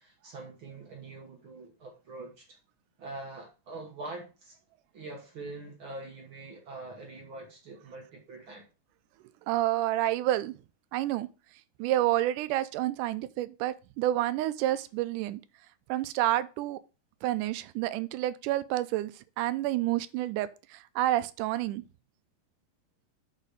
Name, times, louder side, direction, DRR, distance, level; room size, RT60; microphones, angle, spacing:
voice 1, 0.0-2.6 3.0-4.6 4.9-8.7, right 2 dB, 55° right, 1.5 m, -44 dB
voice 2, 9.5-10.5 10.9-11.3 11.8-15.4 15.9-16.8 17.2-19.1 19.4-20.5 21.0-21.8, right 14 dB, 80° right, 2.0 m, -29 dB
6.5 x 4.0 x 6.4 m
omnidirectional pair, 3.9 m